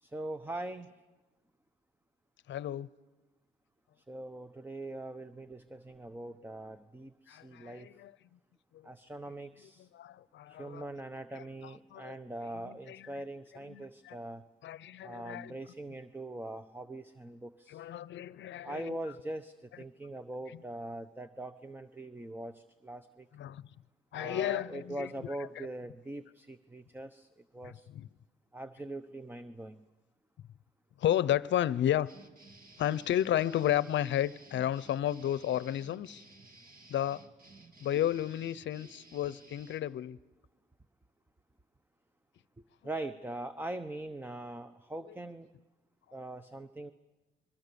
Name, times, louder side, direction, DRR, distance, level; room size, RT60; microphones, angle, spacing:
voice 1, 0.0-0.9 4.0-7.9 8.8-9.9 10.5-14.4 15.0-17.8 18.6-23.3 24.1-27.9 28.5-29.8 37.9-38.0 42.8-45.5 46.1-46.9, right 2 dB, 10° right, 0.9 m, -42 dB
voice 2, 2.5-2.9 7.3-8.1 9.9-10.9 11.3-12.1 12.6-13.1 13.7-14.2 14.6-15.5 17.7-19.0 23.3-23.7 24.1-25.3 27.6-28.1 31.0-32.1 32.8-36.2 36.9-37.2 37.8-40.2 45.1-45.2, left 11 dB, 65° left, 0.7 m, -32 dB
sound 1, 32.0-39.8, right 2 dB, 45° right, 2.5 m, -56 dB
27.5 x 22.0 x 7.0 m
cardioid pair, 90°, 20 cm